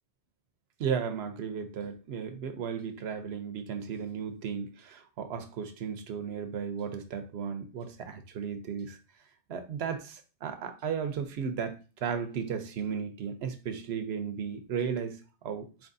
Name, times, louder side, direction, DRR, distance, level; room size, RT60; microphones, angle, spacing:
voice 1, 0.8-9.0 9.5-15.9, right 7 dB, 80° right, 0.9 m, -35 dB
4.5 x 3.5 x 2.6 m
omnidirectional pair, 1.1 m